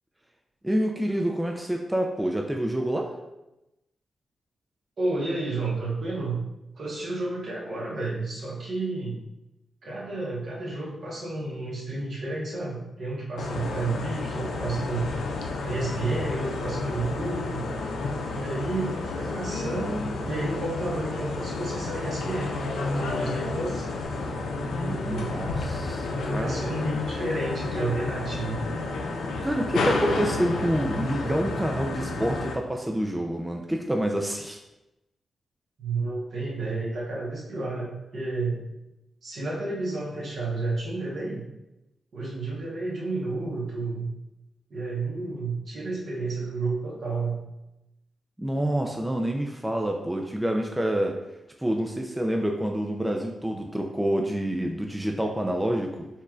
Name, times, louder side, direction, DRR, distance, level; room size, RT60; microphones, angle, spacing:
voice 1, 0.6-3.1 24.7-26.6 29.4-34.6 48.4-51.2 51.6-56.1, right 1 dB, 10° right, 2 dB, 0.5 m, -27 dB
voice 2, 5.0-6.4 6.8-9.2 9.8-15.1 15.6-17.6 18.3-23.9 24.6-25.5 26.1-28.6 35.8-38.6 39.2-41.4 42.1-44.1 44.7-47.4, right 2 dB, 65° right, -5 dB, 1.3 m, -31 dB
sound 1, 13.4-32.5, left 3 dB, 80° left, 0.4 m, -31 dB
4.4 x 3.1 x 2.4 m, 0.93 s
supercardioid pair, 40°, 0 cm